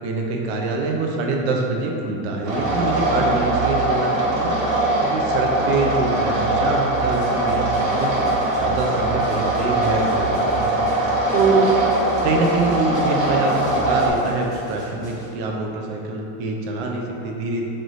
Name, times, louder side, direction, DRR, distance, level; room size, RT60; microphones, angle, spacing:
voice 1, 0.0-4.6 5.0-8.1 8.6-11.7 12.2-17.6, right 3 dB, 50° right, 0 dB, 0.5 m, -25 dB
sound 1, 2.4-14.1, right 1 dB, 75° right, 1.1 m, -21 dB
sound 2, 6.9-15.3, left 1 dB, 10° left, 0.5 m, -42 dB
3.2 x 3.0 x 3.9 m, 2.8 s
cardioid pair, 175°, 41 cm